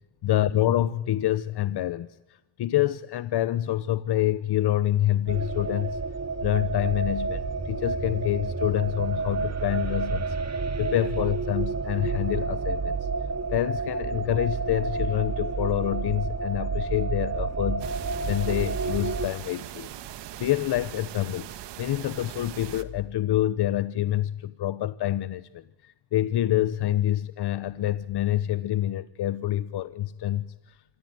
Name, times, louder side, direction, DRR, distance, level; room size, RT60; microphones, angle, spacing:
voice 1, 0.2-6.0 6.4-13.1 13.5-19.9 20.4-30.8, left 13 dB, 70° left, 1.0 m, -27 dB
sound 1, 5.3-19.3, right 4 dB, 40° right, 2.1 m, -30 dB
sound 2, 17.8-22.8, right 12 dB, 85° right, 1.6 m, -41 dB
27.0 x 23.0 x 9.5 m
cardioid pair, 95°, 41 cm